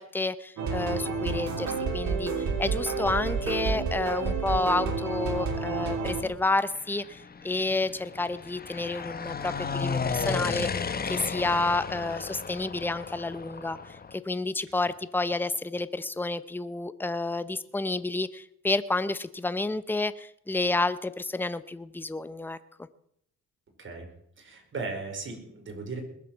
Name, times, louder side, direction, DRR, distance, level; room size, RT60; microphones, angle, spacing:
voice 1, 0.0-2.3 2.6-22.6, left 2 dB, 5° left, 14 dB, 0.8 m, -30 dB
sound 1, 0.6-6.2, right 4 dB, 70° right, 2.8 m, -30 dB
sound 2, 6.7-14.2, left 5 dB, 30° left, 1.1 m, -34 dB
voice 2, 23.8-24.1 24.4-26.0, right 4 dB, 40° right, 3 dB, 5.0 m, -37 dB
20.5 x 7.6 x 7.2 m, 0.73 s
cardioid pair, 90°, 30 cm